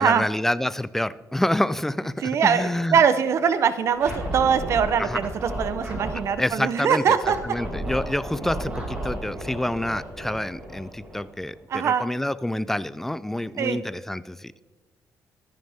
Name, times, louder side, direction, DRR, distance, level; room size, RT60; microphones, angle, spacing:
voice 1, 0.0-3.0 5.0-5.2 6.4-7.2 7.4-14.6, left 1 dB, 5° left, 17 dB, 0.3 m, -27 dB
voice 2, 2.2-7.6 11.7-12.0 13.6-13.8, right 7 dB, 50° right, 12 dB, 0.8 m, -22 dB
Scratching (performance technique), 3.9-6.3 7.2-11.5, equal, 15° right, 4.4 m, -33 dB
25.0 x 10.5 x 3.5 m, 1.2 s
cardioid pair, 160°, 6 cm